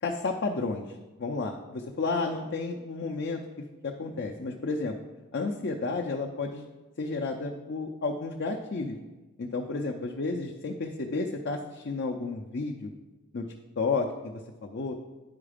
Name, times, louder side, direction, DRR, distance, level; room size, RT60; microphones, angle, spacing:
voice 1, 0.0-3.4 3.8-5.0 5.3-6.6 7.0-9.0 9.4-12.9 13.3-13.4 13.8-14.9, left 3 dB, 50° left, 1 dB, 0.6 m, -32 dB
9.6 x 4.8 x 5.0 m, 1.2 s
head